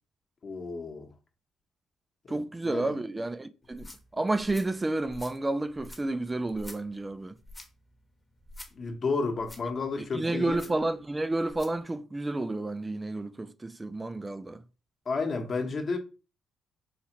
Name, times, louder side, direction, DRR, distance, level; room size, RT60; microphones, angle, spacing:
voice 1, 0.4-1.1 2.3-2.9 8.7-10.6 15.1-16.0, left 4 dB, 45° left, 0.9 m, -32 dB
voice 2, 2.3-3.9 4.1-7.4 10.1-14.6, right 2 dB, 20° right, 0.3 m, -30 dB
sound 1, 3.6-11.8, left 1 dB, 15° left, 0.8 m, -50 dB
4.2 x 2.4 x 2.9 m
cardioid pair, 90°, 0 cm